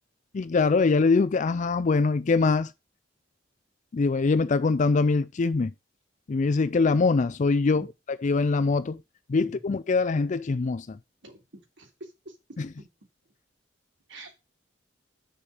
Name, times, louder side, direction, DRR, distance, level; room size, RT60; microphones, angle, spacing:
voice 1, 0.3-2.7 3.9-5.7 6.3-7.9 8.2-9.0 9.3-11.0 12.6-12.7, left 4 dB, 40° left, 0.4 m, -23 dB
voice 2, 11.2-12.4 12.8-12.9 14.1-14.4, right 2 dB, 70° right, 3.0 m, -47 dB
7.0 x 5.1 x 6.5 m
head